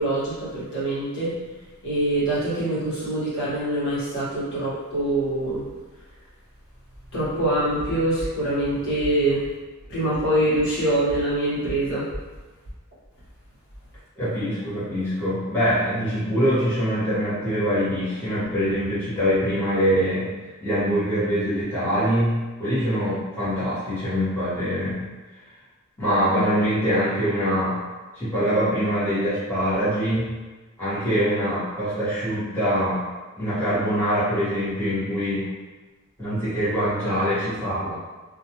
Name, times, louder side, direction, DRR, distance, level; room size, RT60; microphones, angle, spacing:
voice 1, 0.0-1.3 1.8-5.6 7.1-9.4 9.9-12.0, right 1 dB, 60° left, -10 dB, 1.1 m, -24 dB
voice 2, 14.2-20.3 20.6-25.1 26.0-27.8 28.1-30.4 30.8-33.0 33.4-35.5 36.2-37.9, equal, 10° left, -13 dB, 1.1 m, -24 dB
2.4 x 2.2 x 2.9 m, 1.3 s
head